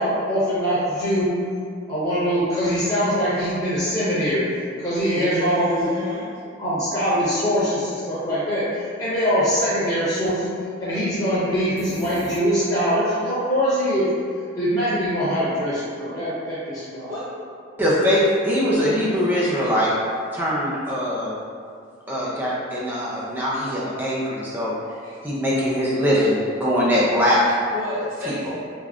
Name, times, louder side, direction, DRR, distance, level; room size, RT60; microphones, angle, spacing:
voice 1, 0.0-1.3 1.9-4.4 4.8-5.9 6.6-10.5 10.8-14.1 14.6-17.1, equal, 20° left, -12 dB, 1.0 m, -23 dB
voice 2, 5.1-6.2 17.1-17.2 25.0-25.2 27.7-28.5, left 1 dB, 45° right, -14 dB, 1.2 m, -31 dB
sound 1, 11.8-13.0, left 2 dB, 75° left, 0.3 m, -37 dB
voice 3, 17.8-19.9 20.3-21.4 22.1-24.7 25.2-27.6 28.3-28.4, equal, 10° right, -7 dB, 0.4 m, -22 dB
3.4 x 2.2 x 2.4 m, 2.3 s
head